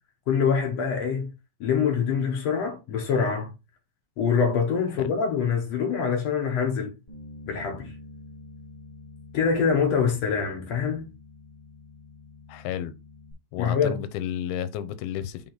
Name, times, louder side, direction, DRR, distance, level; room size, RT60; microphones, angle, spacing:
voice 1, 0.3-1.3 1.6-3.5 4.2-6.9 7.5-7.9 9.3-11.1 13.6-14.0, left 6 dB, 60° left, 1.8 m, -25 dB
Bass guitar, 7.1-13.3, left 3 dB, 35° left, 0.6 m, -47 dB
voice 2, 12.5-12.9 13.5-15.5, left 10 dB, 85° left, 2.7 m, -32 dB
6.2 x 3.8 x 4.0 m
omnidirectional pair, 4.4 m